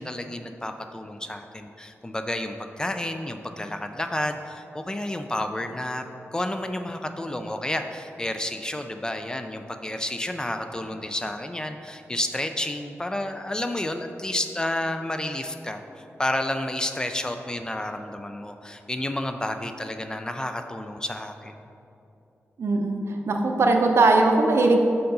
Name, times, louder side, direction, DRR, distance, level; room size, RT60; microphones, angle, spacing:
voice 1, 0.0-6.0 6.3-15.8 16.2-21.6, left 1 dB, 15° left, 6 dB, 0.3 m, -30 dB
voice 2, 22.6-23.0 23.3-24.8, right 3 dB, 65° right, 3 dB, 0.6 m, -19 dB
6.8 x 3.8 x 5.3 m, 2.8 s
wide cardioid pair, 135°, 5 cm